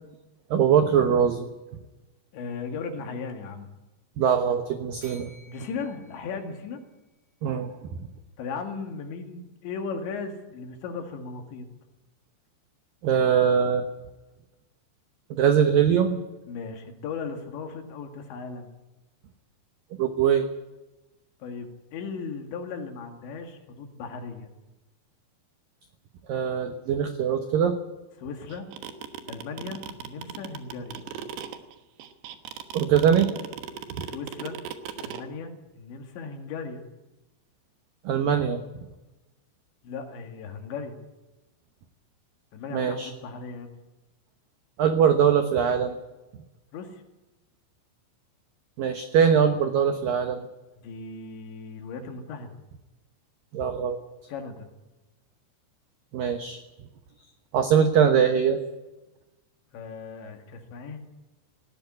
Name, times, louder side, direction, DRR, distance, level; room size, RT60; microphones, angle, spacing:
voice 1, 0.5-1.5 4.2-5.3 7.4-7.7 13.0-13.9 15.3-16.2 20.0-20.5 26.3-27.8 32.7-33.3 33.9-34.0 38.0-38.6 42.7-43.1 44.8-46.0 48.8-50.4 53.5-54.0 56.1-56.6 57.5-58.6, right 7 dB, 85° right, 8 dB, 2.0 m, -22 dB
voice 2, 2.3-3.7 5.5-6.8 8.4-11.7 16.5-18.7 21.4-24.5 28.2-28.7 29.3-31.0 34.0-34.6 35.0-36.8 39.8-41.0 42.5-43.7 46.7-47.0 50.8-52.6 54.3-54.7 59.7-61.0, left 5 dB, 65° left, 5 dB, 4.2 m, -37 dB
Bell, 5.0-7.3, right 1 dB, 25° right, 8.6 m, -54 dB
sound 1, 28.5-35.2, right 9 dB, 70° right, 3.0 m, -37 dB
19.0 x 15.0 x 9.8 m, 1.1 s
omnidirectional pair, 5.8 m